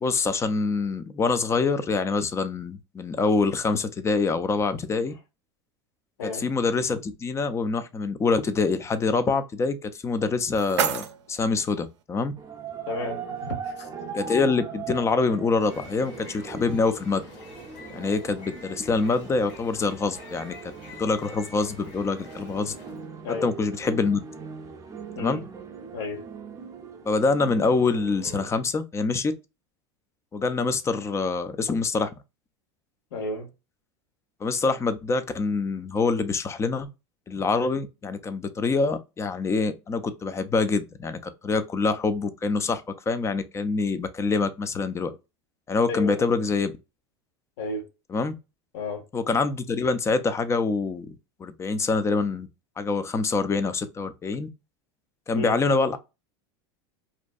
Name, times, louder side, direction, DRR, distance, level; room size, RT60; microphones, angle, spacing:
voice 1, 0.0-5.1 6.2-12.3 14.1-17.2 17.9-20.7 21.0-22.7 23.4-24.2 25.2-25.4 27.1-29.3 30.3-32.1 34.4-36.9 37.3-45.1 45.7-46.7 48.1-48.3 49.1-51.1 51.4-52.5 52.8-54.5 55.3-56.0, left 4 dB, 20° left, 0.4 m, -25 dB
voice 2, 6.2-6.5 12.9-13.9 23.2-23.5 25.1-25.4 25.9-26.3 33.1-33.5 45.9-46.1 47.6-47.9 48.7-49.0 55.3-55.6, left 3 dB, 75° left, 0.9 m, -32 dB
sound 1, 10.0-12.0, right 9 dB, 80° right, 0.5 m, -32 dB
sound 2, 12.3-28.5, right 5 dB, 25° right, 0.6 m, -40 dB
sound 3, 15.4-23.1, left 2 dB, 60° left, 1.2 m, -46 dB
2.6 x 2.1 x 2.4 m
hypercardioid pair, 100°, 14 cm